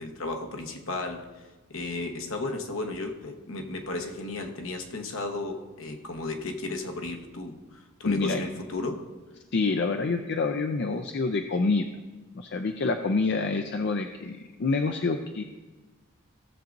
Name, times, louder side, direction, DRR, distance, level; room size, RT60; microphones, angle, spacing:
voice 1, 0.0-9.0, left 2 dB, 70° left, 4 dB, 1.1 m, -34 dB
voice 2, 8.0-8.4 9.5-11.8 12.3-15.4, left 3 dB, 50° left, 6 dB, 0.5 m, -27 dB
16.5 x 7.2 x 2.6 m, 1.2 s
head